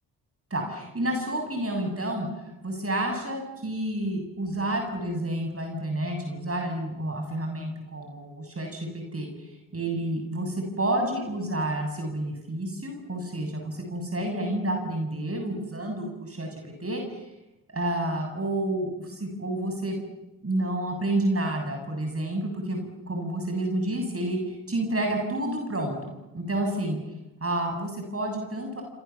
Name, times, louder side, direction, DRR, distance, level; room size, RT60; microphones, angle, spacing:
voice 1, 0.5-17.3 17.7-20.0 20.4-27.0 27.4-28.8, right 1 dB, 30° right, 3 dB, 7.2 m, -30 dB
26.5 x 26.5 x 7.3 m, 0.97 s
hypercardioid pair, 45°, 47 cm